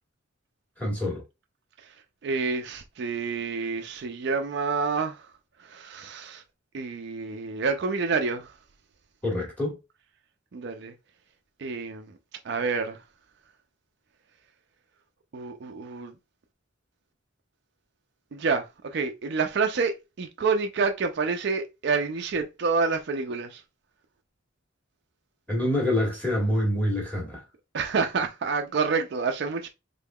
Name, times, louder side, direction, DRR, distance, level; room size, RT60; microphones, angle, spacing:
voice 1, 0.8-1.2 9.2-9.8 25.5-27.4, left 1 dB, 10° left, 1.3 m, -26 dB
voice 2, 2.2-5.3 5.6-6.4 6.7-8.5 10.5-10.9 11.6-12.1 12.4-13.0 15.3-16.1 18.3-23.6 27.7-29.7, right 4 dB, 55° right, 0.4 m, -28 dB
3.7 x 3.5 x 2.2 m
head